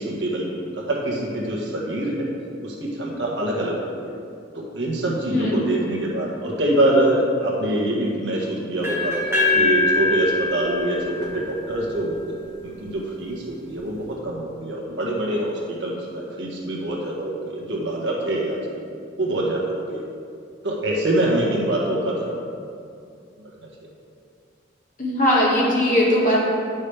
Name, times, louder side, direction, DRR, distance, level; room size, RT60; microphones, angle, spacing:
voice 1, 0.0-2.3 2.6-4.1 4.5-9.1 9.5-12.2 12.4-18.6 19.2-20.0 20.6-22.5, right 1 dB, 70° right, -3 dB, 1.6 m, -25 dB
sound 1, 8.8-12.7, left 2 dB, 15° right, 1.9 m, -24 dB
voice 2, 25.0-26.4, left 1 dB, 45° left, -6 dB, 1.9 m, -19 dB
10.5 x 6.3 x 3.4 m, 2.3 s
head